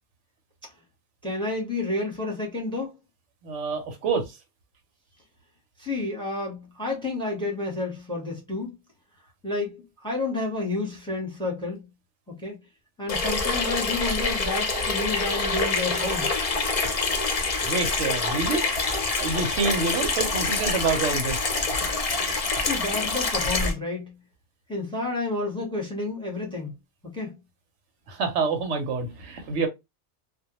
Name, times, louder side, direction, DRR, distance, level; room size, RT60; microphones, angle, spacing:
voice 1, 1.2-3.0 5.8-8.7 9.4-11.9 12.3-12.6 13.0-16.3 22.2-22.3 22.6-24.1 24.7-26.7 27.0-27.3, left 2 dB, 5° left, 0.8 m, -30 dB
voice 2, 3.4-4.4 17.6-18.6 19.2-21.5 28.1-29.7, right 4 dB, 85° right, 1.0 m, -27 dB
Water tap faucet / Sink (filling or washing), 13.1-23.7, left 3 dB, 45° left, 0.5 m, -26 dB
2.2 x 2.2 x 2.9 m
omnidirectional pair, 1.2 m